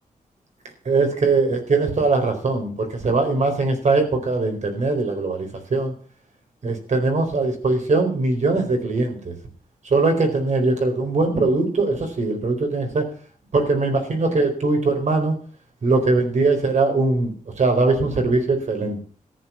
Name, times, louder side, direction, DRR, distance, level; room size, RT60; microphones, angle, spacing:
voice 1, 0.9-5.9 6.6-9.3 9.8-13.1 13.5-15.4 15.8-19.0, right 3 dB, 55° right, 4 dB, 4.3 m, -21 dB
14.5 x 9.1 x 7.5 m, 0.42 s
wide cardioid pair, 160°, 14 cm